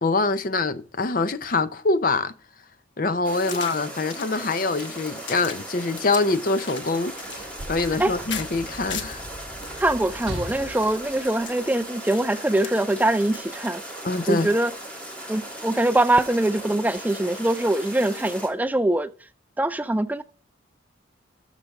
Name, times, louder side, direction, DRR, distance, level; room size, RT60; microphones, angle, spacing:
voice 1, 0.0-2.3 3.0-7.2 7.7-9.2 14.0-14.5, left 3 dB, 45° left, 0.6 m, -24 dB
sound 1, 3.2-18.5, right 1 dB, 5° left, 2.9 m, -38 dB
sound 2, 3.3-9.3 9.6-13.7, left 7 dB, 70° left, 1.1 m, -39 dB
Sliding door / Slam, 7.1-12.2 13.1-13.2, right 1 dB, 55° right, 2.0 m, -39 dB
voice 2, 9.8-13.8 14.3-14.7 15.3-19.1 19.6-20.2, right 1 dB, 10° right, 0.4 m, -23 dB
13.5 x 5.1 x 3.6 m
head